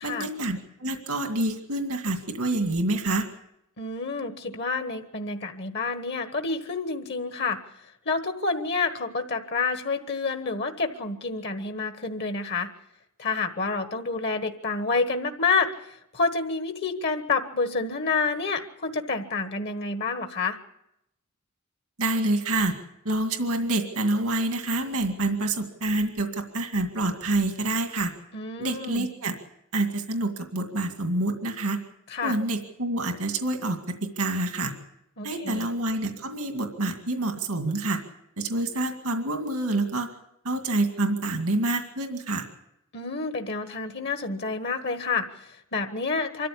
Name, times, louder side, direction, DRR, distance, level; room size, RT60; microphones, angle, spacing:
voice 1, 0.0-3.3 22.0-22.7 23.0-28.1 28.6-29.3 29.7-31.8 32.2-34.7 35.2-38.0 38.4-40.1 40.4-42.5, right 2 dB, 85° right, 5 dB, 2.2 m, -27 dB
voice 2, 3.8-7.6 8.0-12.7 13.2-20.6 28.3-29.1 32.1-32.3 35.2-35.7 42.9-46.5, left 4 dB, 50° left, 7 dB, 1.4 m, -28 dB
25.0 x 14.0 x 8.5 m, 0.83 s
head